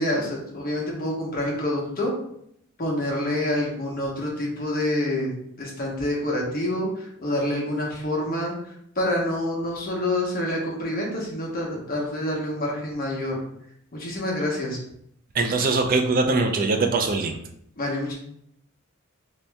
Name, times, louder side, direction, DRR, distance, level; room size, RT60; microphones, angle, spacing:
voice 1, 0.0-2.1 2.8-13.4 13.9-14.8 17.8-18.1, left 1 dB, 45° left, -3 dB, 1.0 m, -27 dB
voice 2, 15.3-17.4, right 3 dB, 40° right, 5 dB, 0.4 m, -22 dB
3.1 x 2.8 x 3.4 m, 0.71 s
head